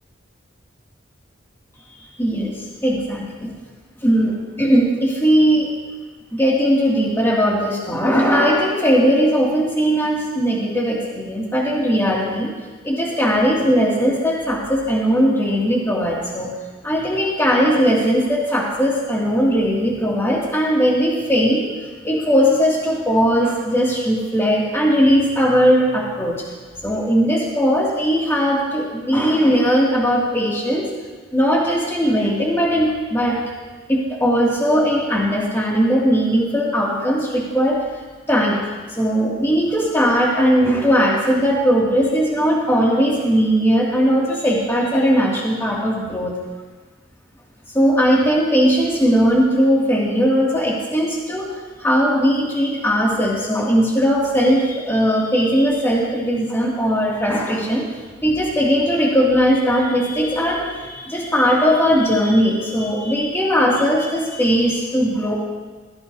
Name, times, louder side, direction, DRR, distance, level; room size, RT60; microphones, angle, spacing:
voice 1, 2.0-3.5 4.0-5.7 6.3-12.5 12.8-16.5 16.8-21.6 22.0-26.4 26.8-30.9 31.3-33.4 33.9-37.8 38.3-38.6 38.9-46.3 47.7-51.4 51.8-57.9 58.2-65.3, equal, 15° left, -4 dB, 2.4 m, -18 dB
17.0 x 14.5 x 2.8 m, 1.4 s
head